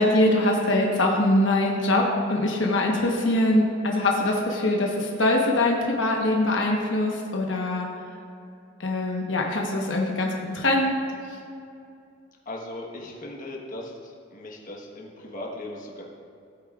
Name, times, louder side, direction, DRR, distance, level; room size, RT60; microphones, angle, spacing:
voice 1, 0.0-7.9 8.8-10.9, left 1 dB, 65° left, -1 dB, 1.2 m, -23 dB
voice 2, 12.4-16.0, left 1 dB, 45° left, -1 dB, 1.3 m, -38 dB
17.0 x 8.5 x 2.5 m, 2.5 s
head